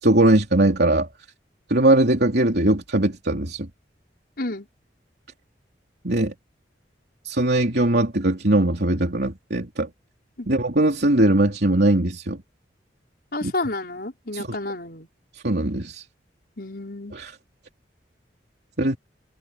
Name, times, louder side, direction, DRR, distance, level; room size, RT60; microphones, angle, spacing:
voice 1, 0.0-1.1 1.7-3.7 6.0-6.3 7.2-9.9 10.5-12.4 13.4-13.5 14.3-14.5 15.3-16.0 17.1-17.3 18.8-19.0, right 1 dB, 60° right, 3.4 m, -20 dB
voice 2, 13.3-15.1 16.6-17.1, left 2 dB, 60° left, 5.4 m, -30 dB
head